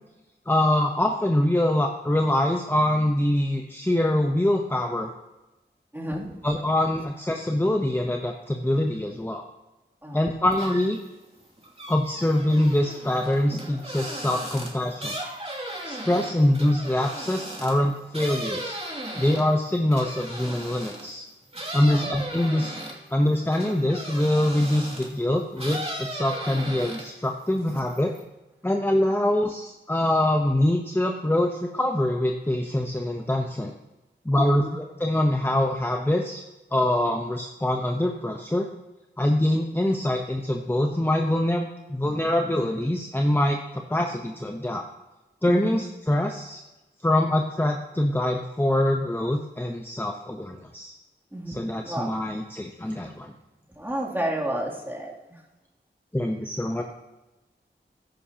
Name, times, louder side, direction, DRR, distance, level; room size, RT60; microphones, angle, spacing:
voice 1, 0.5-5.1 6.4-9.4 10.1-11.0 11.9-15.2 15.8-18.8 19.2-21.2 21.7-22.8 23.1-28.1 28.6-33.7 34.2-36.4 36.7-38.7 39.2-44.8 45.4-46.6 47.0-50.9 51.5-53.3 56.1-56.8, left 1 dB, 10° left, 2 dB, 0.9 m, -24 dB
voice 2, 5.9-6.4 10.0-10.3 21.8-22.1 34.4-34.7 45.5-45.8 51.3-52.3 53.8-55.4, right 1 dB, 10° right, -4 dB, 2.8 m, -31 dB
sound 1, 10.5-11.1 11.4-21.1 21.5-25.2 25.6-27.3 27.6-28.2, right 1 dB, 30° right, 2.6 m, -36 dB
14.5 x 11.0 x 2.9 m, 1.1 s
wide cardioid pair, 65°, 19 cm